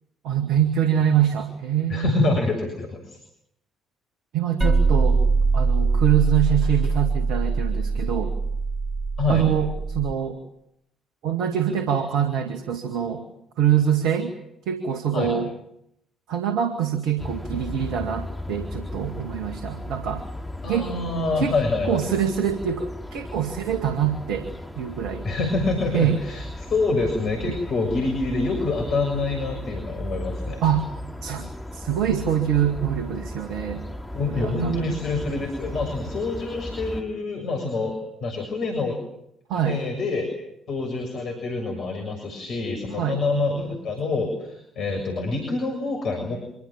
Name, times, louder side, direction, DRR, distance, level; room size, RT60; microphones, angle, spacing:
voice 1, 0.2-2.3 4.3-5.2 5.5-8.3 9.3-10.4 11.2-13.3 13.6-14.3 14.7-15.5 16.3-20.2 20.7-20.9 21.4-21.5 21.9-24.5 24.8-25.2 25.9-26.2 30.6-30.9 31.2-33.8 34.3-34.9 39.5-39.8 43.0-43.2, right 9 dB, 60° right, 6 dB, 2.1 m, -24 dB
voice 2, 1.9-3.2 9.2-9.4 15.1-15.3 20.6-22.0 25.2-30.6 34.1-39.0 39.5-40.3 40.7-46.4, left 3 dB, 50° left, 4 dB, 6.7 m, -26 dB
sound 1, 4.6-10.1, right 4 dB, 15° right, 2.7 m, -22 dB
sound 2, 17.2-37.0, left 1 dB, 5° left, 4.7 m, -36 dB
25.5 x 24.5 x 7.5 m, 0.78 s
figure-of-eight pair, 45°, 0 cm